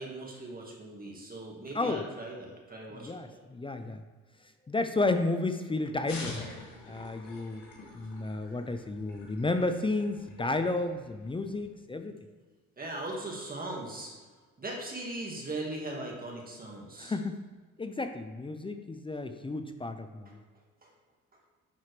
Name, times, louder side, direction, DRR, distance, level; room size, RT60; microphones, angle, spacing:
voice 1, 0.0-3.4 6.9-7.0 12.8-14.1 14.6-17.2 20.8-20.9, right 2 dB, 30° right, -1 dB, 1.7 m, -39 dB
voice 2, 3.0-4.0 4.7-6.3 6.9-7.6 7.9-12.2 17.0-17.4 17.8-20.4, left 2 dB, 15° left, 8 dB, 0.5 m, -32 dB
sound 1, 6.1-11.7, left 3 dB, 85° left, 2.3 m, -46 dB
11.0 x 4.2 x 3.3 m, 1.4 s
cardioid pair, 90°, 30 cm